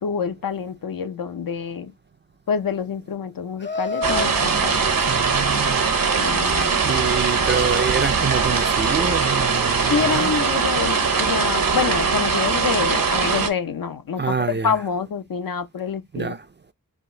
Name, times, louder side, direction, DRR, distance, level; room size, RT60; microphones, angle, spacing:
voice 1, 0.0-1.9 2.5-4.8 6.2-6.8 9.9-16.3, left 6 dB, 80° left, 0.6 m, -27 dB
Laughter, 3.6-6.8, left 3 dB, 35° left, 0.6 m, -32 dB
sound 1, 4.0-13.5, right 5 dB, 75° right, 0.9 m, -21 dB
voice 2, 5.1-5.8 6.8-10.3 14.2-14.7 16.1-16.4, right 5 dB, 35° right, 0.4 m, -26 dB
4.9 x 2.4 x 3.7 m
wide cardioid pair, 80°, 34 cm